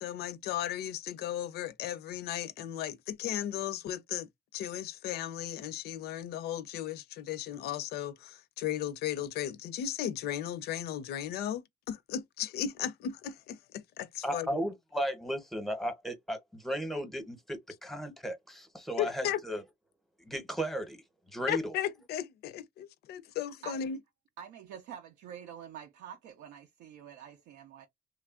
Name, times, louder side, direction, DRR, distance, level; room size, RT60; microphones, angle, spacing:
voice 1, 0.0-4.3 4.5-14.5 19.0-19.4 21.5-24.0, left 10 dB, 70° left, 0.5 m, -36 dB
voice 2, 14.2-19.6 20.2-21.0 21.3-21.8, equal, ahead, 0.8 m, -35 dB
voice 3, 24.4-27.9, right 9 dB, 85° right, 0.6 m, -47 dB
3.1 x 2.3 x 2.3 m
cardioid pair, 110°, 17 cm